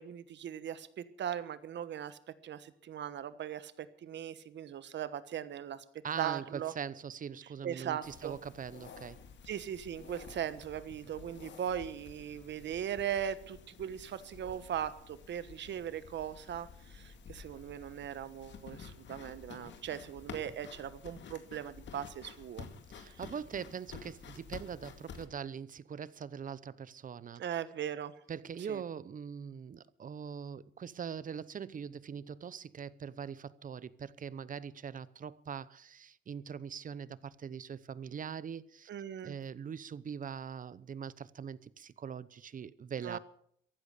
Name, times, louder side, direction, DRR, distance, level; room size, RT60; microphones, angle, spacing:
voice 1, 0.0-5.8 6.2-6.7 7.6-8.3 9.5-22.7 23.1-23.2 27.4-28.1 28.7-28.8 38.9-39.3 43.0-43.2, right 9 dB, 65° right, 1.3 m, -39 dB
voice 2, 6.0-9.2 22.9-27.4 28.3-38.9 39.2-43.2, right 7 dB, 45° right, 0.8 m, -42 dB
sound 1, 8.0-25.3, left 6 dB, 65° left, 2.3 m, -51 dB
15.0 x 11.5 x 6.7 m
cardioid pair, 90°, 20 cm